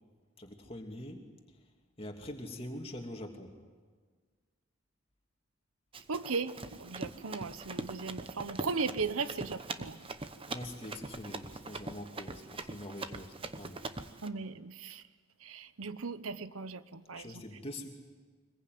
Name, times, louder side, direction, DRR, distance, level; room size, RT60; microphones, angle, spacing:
voice 1, 0.4-1.2 2.0-3.5 10.5-13.8 17.1-17.9, left 1 dB, 25° left, 3 dB, 2.7 m, -44 dB
Run, 5.9-14.3, right 2 dB, 25° right, 1.0 m, -42 dB
voice 2, 6.1-10.0 14.2-15.0 15.4-17.4, right 4 dB, 90° right, 13 dB, 1.0 m, -37 dB
25.5 x 21.0 x 9.5 m, 1.5 s
head